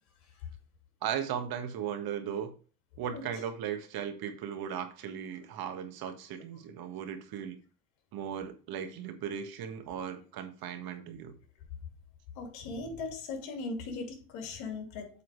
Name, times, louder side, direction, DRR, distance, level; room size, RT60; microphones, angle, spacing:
voice 1, 1.0-2.5 3.0-7.6 8.1-11.4, right 8 dB, 55° right, 1.5 m, -37 dB
voice 2, 3.1-3.4 12.3-15.2, left 3 dB, 75° left, 2.5 m, -39 dB
8.5 x 3.8 x 4.7 m
supercardioid pair, 95°, 44 cm